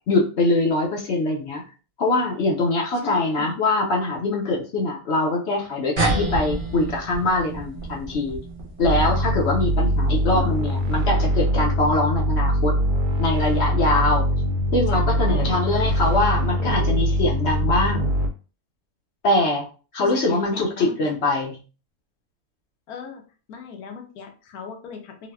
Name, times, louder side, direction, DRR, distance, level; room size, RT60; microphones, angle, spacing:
voice 1, 0.1-1.6 2.0-8.4 8.8-12.7 13.2-14.3 14.7-18.1 19.2-19.7 19.9-21.6, left 2 dB, 60° left, -1 dB, 0.8 m, -23 dB
voice 2, 2.9-3.6 10.3-10.5 14.9-15.6 16.6-17.0 20.0-21.1 22.9-23.2 23.5-25.3, left 5 dB, 80° left, 3 dB, 1.2 m, -37 dB
sound 1, 6.0-10.8, right 2 dB, 70° right, 1.2 m, -30 dB
sound 2, 8.8-18.3, equal, 90° right, 1.1 m, -22 dB
4.0 x 2.1 x 2.2 m, 0.36 s
omnidirectional pair, 1.6 m